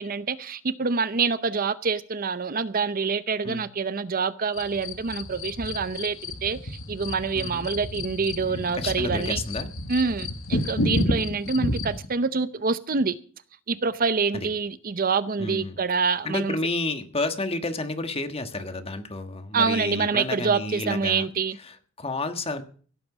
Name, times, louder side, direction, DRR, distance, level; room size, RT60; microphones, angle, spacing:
voice 1, 0.0-9.4 9.9-13.2 13.7-16.6 19.5-21.6, right 5 dB, 45° right, 0.7 m, -26 dB
sound 1, 4.5-12.0, left 1 dB, 85° left, 1.8 m, -31 dB
voice 2, 7.3-7.7 8.7-9.7 14.3-14.5 15.4-15.8 16.2-21.3 21.6-22.6, left 2 dB, 30° left, 1.5 m, -30 dB
16.5 x 9.0 x 6.1 m
head